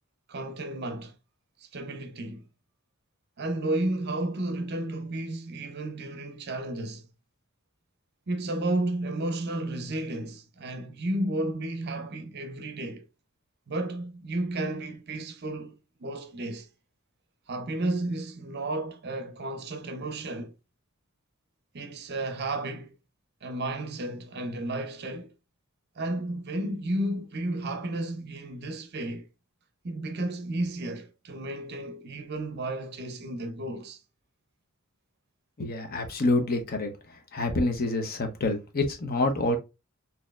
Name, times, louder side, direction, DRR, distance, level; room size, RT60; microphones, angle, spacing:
voice 1, 0.3-1.2 1.6-2.4 3.4-7.1 8.3-13.1 13.7-16.7 17.5-20.5 21.7-22.9 23.4-25.3 26.0-29.3 29.8-34.0, right 1 dB, 50° right, 0.6 m, -32 dB
voice 2, 35.6-36.9 37.3-39.6, left 2 dB, 45° left, 0.8 m, -27 dB
4.2 x 2.8 x 2.4 m
head